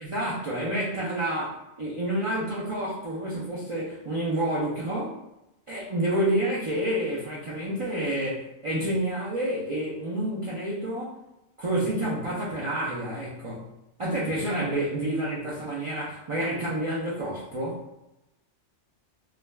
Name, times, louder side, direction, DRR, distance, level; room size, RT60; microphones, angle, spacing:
voice 1, 0.0-5.1 5.7-11.2 11.6-13.7 14.0-17.8, right 1 dB, 50° right, -6 dB, 0.3 m, -29 dB
2.4 x 2.2 x 3.1 m, 0.91 s
omnidirectional pair, 1.2 m